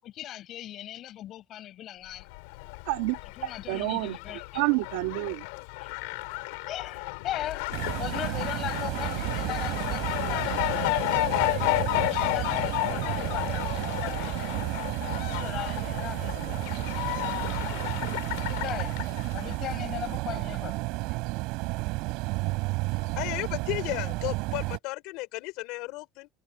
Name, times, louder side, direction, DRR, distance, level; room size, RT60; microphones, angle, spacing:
voice 1, 0.0-2.3 3.4-4.6 5.8-6.4 6.6-14.8 15.1-16.3 18.2-19.0 19.3-21.2, left 12 dB, 35° left, 7.4 m, -39 dB
Fowl, 2.2-19.6, left 26 dB, 90° left, 3.9 m, -32 dB
voice 2, 2.9-4.2 4.5-5.4, right 24 dB, 80° right, 3.2 m, -29 dB
sound 1, 7.7-24.8, right 24 dB, 55° right, 6.8 m, -32 dB
voice 3, 23.0-26.3, left 22 dB, 55° left, 4.7 m, -34 dB
cardioid pair, 180°, 0 cm